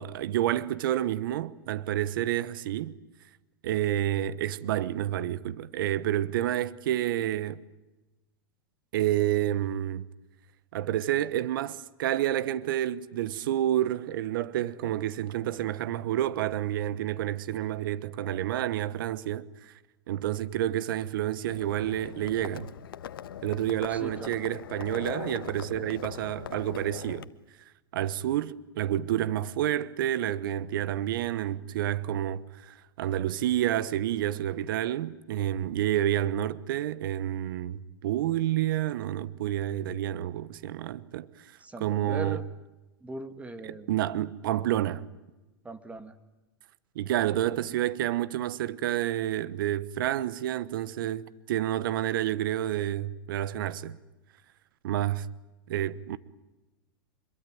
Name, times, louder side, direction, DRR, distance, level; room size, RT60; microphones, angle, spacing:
voice 1, 0.0-3.0 3.6-7.6 8.9-10.1 10.7-19.7 20.1-22.7 23.4-27.3 27.9-41.3 41.8-42.4 43.6-45.0 46.9-54.0 54.8-55.3 55.7-56.2, right 12 dB, 70° right, 1.2 m, -29 dB
Livestock farm animals working animals, 21.5-27.2, left 10 dB, 75° left, 1.3 m, -41 dB
voice 2, 23.9-24.4 41.6-42.4 43.0-43.9 45.6-46.1, right 2 dB, 10° right, 2.4 m, -39 dB
25.5 x 23.0 x 9.3 m
hypercardioid pair, 110°, 12 cm